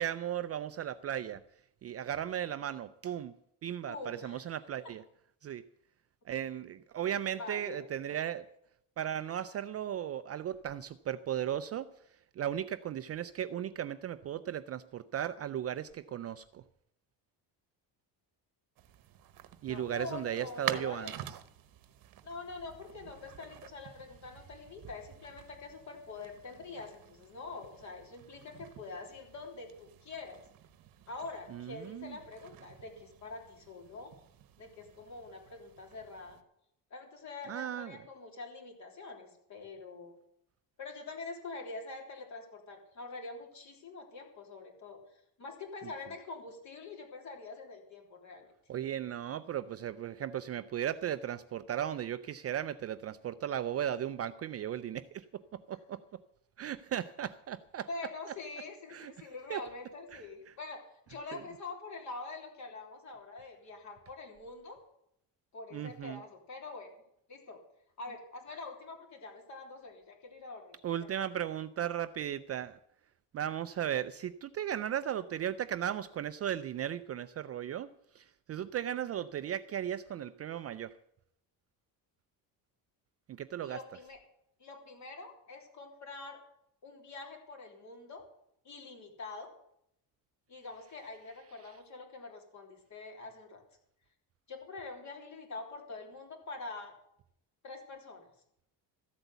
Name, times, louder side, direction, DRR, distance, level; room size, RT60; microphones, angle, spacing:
voice 1, 0.0-1.4 1.8-3.3 3.6-5.0 5.4-5.6 6.3-8.5 9.0-11.9 12.4-16.6 19.6-21.1 31.5-32.2 37.5-37.9 48.7-55.4 55.7-56.0 56.6-57.9 58.9-59.1 59.5-59.6 60.1-60.5 61.3-61.4 65.7-66.2 70.8-72.8 73.3-80.9 83.3-83.8, right 10 dB, 35° right, 12 dB, 0.4 m, -36 dB
voice 2, 3.9-4.5 4.8-4.9 7.4-7.9 19.7-21.3 22.2-30.4 31.1-34.1 34.6-36.4 36.9-40.2 40.8-45.0 45.4-48.5 57.9-60.8 61.1-64.8 65.5-67.0 67.3-67.6 68.0-71.3 83.6-84.2 84.6-86.4 86.8-88.2 88.6-89.5 90.5-93.6 94.5-96.9 97.6-98.3, left 3 dB, 40° left, 2 dB, 3.4 m, -45 dB
sound 1, 18.8-36.4, right 12 dB, 55° right, 1.0 m, -48 dB
14.5 x 8.0 x 8.0 m, 0.75 s
cardioid pair, 165°, 42 cm